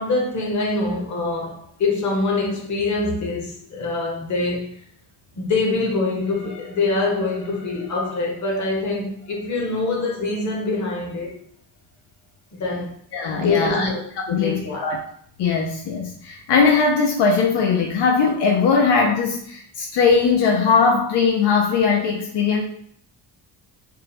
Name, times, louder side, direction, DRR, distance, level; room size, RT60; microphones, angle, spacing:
voice 1, 0.0-4.8 5.4-11.3 12.5-12.9 13.3-14.0 14.3-14.9, left 3 dB, 40° left, 1.0 m, -24 dB
voice 2, 13.1-13.9 14.2-15.0 15.4-22.6, left 5 dB, 75° left, 0.6 m, -19 dB
3.6 x 2.1 x 4.2 m
wide cardioid pair, 180°, 42 cm